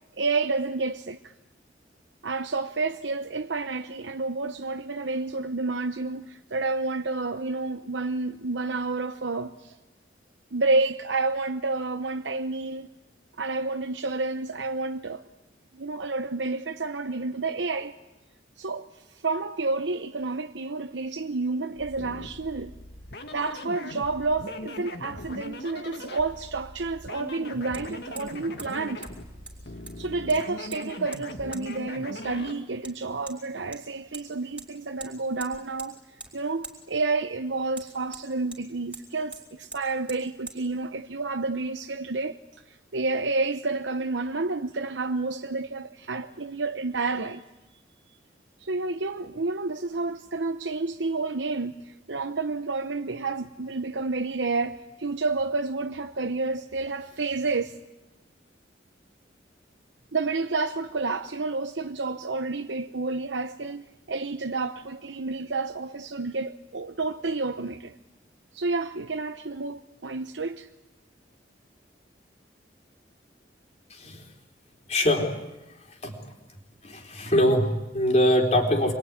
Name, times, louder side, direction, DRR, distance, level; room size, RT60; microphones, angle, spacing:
voice 1, 0.2-1.3 2.2-9.7 10.5-12.9 13.4-15.2 15.7-17.9 18.6-18.9 19.2-22.7 23.3-29.0 30.0-36.0 36.3-42.4 42.7-47.4 48.6-57.8 60.1-68.0 68.5-70.7, right 3 dB, 90° right, 0.9 m, -30 dB
sound 1, 21.7-32.6, left 1 dB, 60° left, 2.4 m, -40 dB
Hammer, 27.7-27.8 28.2-28.3 28.6-28.7 29.0-29.1 29.5-30.0 30.3-30.8 31.1-31.2 31.5-31.6 32.8-32.9 33.3-33.4 33.7-34.3 34.6-34.7 35.0-35.1 35.4-35.9 36.2-36.3 36.6-36.8 37.7-38.6 38.9-39.1 39.3-39.4 39.7-39.8 40.1-40.2 40.5-40.6, right 3 dB, 10° right, 4.4 m, -42 dB
voice 2, 74.9-75.3 76.0-76.2 76.8-78.9, equal, 35° left, 4.0 m, -23 dB
27.0 x 22.0 x 9.7 m
head